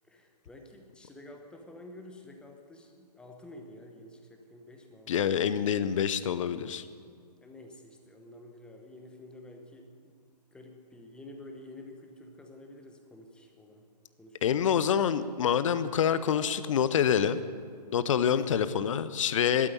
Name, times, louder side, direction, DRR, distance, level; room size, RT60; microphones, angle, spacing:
voice 1, 0.1-5.3 7.4-10.2 10.5-13.8 14.2-14.9 18.2-18.6, left 1 dB, 5° left, 3 dB, 0.9 m, -50 dB
voice 2, 5.1-6.9 14.4-17.4 17.9-19.7, left 8 dB, 50° left, 14 dB, 0.7 m, -26 dB
12.5 x 8.7 x 9.2 m, 2.2 s
hypercardioid pair, 140°, 21 cm